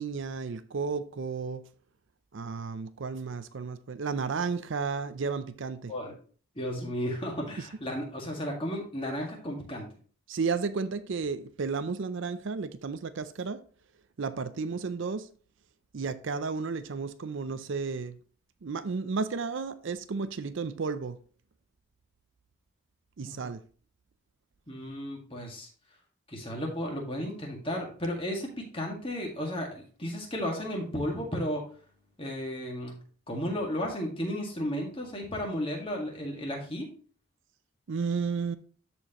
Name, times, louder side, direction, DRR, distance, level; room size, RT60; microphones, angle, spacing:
voice 1, 0.0-1.6 2.3-5.9 10.3-13.6 14.2-15.3 15.9-18.2 18.6-21.2 23.2-23.6 37.9-38.6, right 5 dB, 60° right, 0.5 m, -33 dB
voice 2, 6.5-9.9 23.2-23.4 24.7-25.7 26.3-31.6 32.2-33.0 33.3-36.9, equal, 25° left, 1.9 m, -34 dB
13.5 x 4.4 x 2.9 m
head